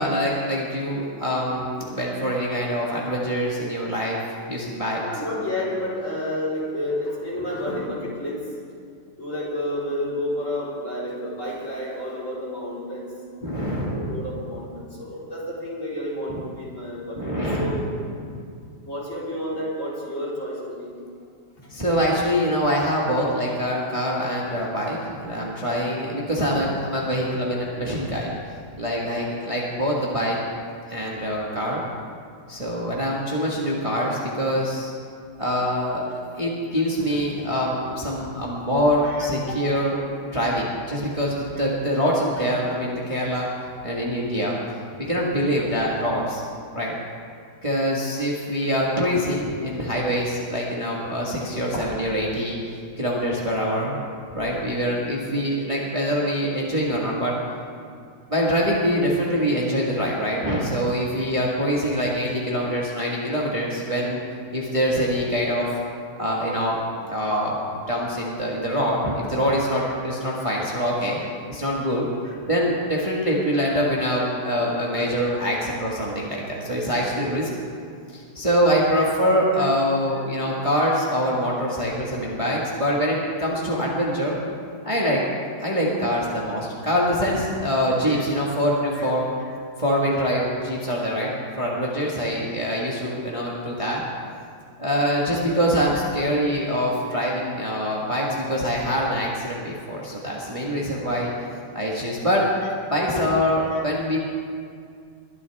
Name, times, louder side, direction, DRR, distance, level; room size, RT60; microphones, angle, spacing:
voice 1, 0.0-4.2 4.5-5.0 13.4-14.3 16.3-16.4 17.2-17.8 18.1-18.3 21.7-28.4 28.8-30.4 30.9-31.8 32.5-34.9 35.4-43.5 43.8-44.6 45.0-46.4 46.7-46.9 47.6-52.6 53.0-54.0 54.3-57.4 58.3-64.2 64.5-65.7 66.2-66.8 67.1-71.2 71.5-72.1 72.5-77.5 78.1-84.4 84.8-85.3 85.6-89.3 89.8-94.0 94.8-101.3 101.7-102.4 102.9-104.2, equal, 20° right, -4 dB, 1.6 m, -24 dB
voice 2, 5.0-8.4 9.2-13.1 13.9-17.8 18.8-20.9 21.6-21.7 30.2-30.3 31.5-31.6 37.4-37.5 39.2-39.6 50.9-51.1 59.2-59.3 79.0-79.1 88.0-88.2 89.0-89.1 103.7-103.8, left 1 dB, 45° left, -8 dB, 4.6 m, -30 dB
22.0 x 12.0 x 3.6 m, 2.3 s
omnidirectional pair, 1.9 m